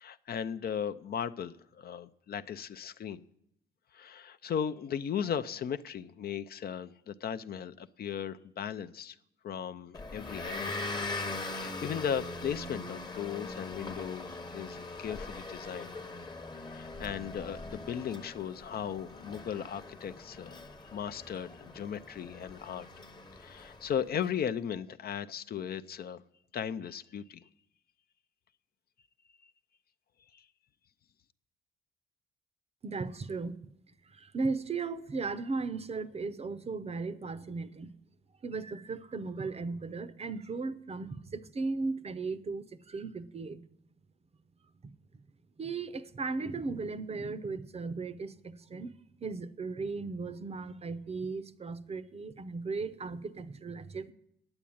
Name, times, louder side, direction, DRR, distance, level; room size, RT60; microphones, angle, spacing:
voice 1, 0.0-3.2 3.9-9.2 9.4-10.8 11.4-16.0 16.6-20.6 20.9-22.9 23.4-26.2 26.5-27.4, left 8 dB, 50° left, 0.5 m, -37 dB
Motor vehicle (road) / Engine, 9.9-24.2, left 2 dB, 20° left, 0.9 m, -41 dB
voice 2, 32.8-33.6 34.1-37.9 38.4-43.6 45.6-48.9 49.2-54.1, right 4 dB, 30° right, 0.6 m, -36 dB
8.8 x 8.4 x 8.6 m
cardioid pair, 90°, 20 cm